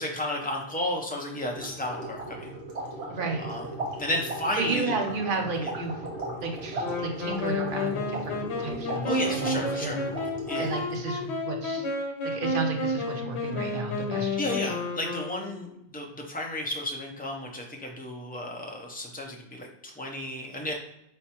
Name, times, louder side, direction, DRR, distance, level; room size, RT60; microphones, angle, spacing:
voice 1, 0.0-2.5 3.4-3.6 4.0-4.9 5.6-5.7 9.0-10.0 10.5-10.7 14.4-20.7, left 1 dB, 10° left, 0 dB, 0.5 m, -33 dB
sound 1, 1.5-11.0, right 1 dB, 85° right, 1.5 m, -37 dB
voice 2, 3.1-3.4 4.6-6.0 6.4-10.1 10.6-11.9 12.2-14.7, right 3 dB, 55° right, 2 dB, 0.9 m, -32 dB
Wind instrument woodwind instrument, 6.8-15.8, left 2 dB, 85° left, 1.0 m, -31 dB
4.5 x 3.5 x 2.8 m, 0.80 s
omnidirectional pair, 1.1 m